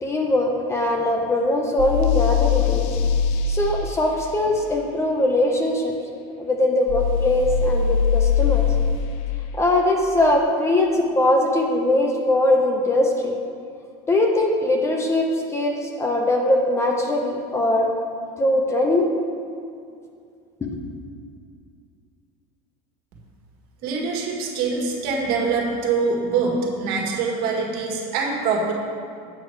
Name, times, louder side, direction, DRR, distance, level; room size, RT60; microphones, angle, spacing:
voice 1, 0.0-2.9 3.5-5.9 6.4-8.7 9.5-13.3 14.1-17.9 18.4-19.1 20.6-20.8, left 1 dB, 15° left, 1 dB, 0.7 m, -21 dB
sound 1, 1.8-3.4 6.9-9.0, left 7 dB, 70° left, 0.5 m, -21 dB
voice 2, 23.8-28.7, right 4 dB, 60° right, -1 dB, 1.7 m, -24 dB
8.5 x 6.2 x 4.6 m, 2.4 s
cardioid pair, 145°, 17 cm